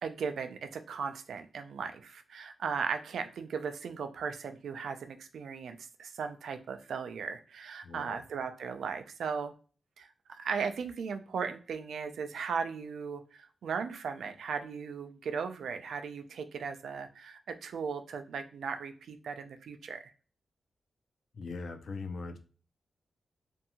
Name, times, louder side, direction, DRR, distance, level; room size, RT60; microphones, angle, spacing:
voice 1, 0.0-9.5 10.0-20.1, right 6 dB, 85° right, 7 dB, 0.3 m, -37 dB
voice 2, 7.8-8.2 21.3-22.4, left 4 dB, 55° left, 8 dB, 0.4 m, -40 dB
2.6 x 2.2 x 2.8 m, 0.36 s
wide cardioid pair, 175°, 0 cm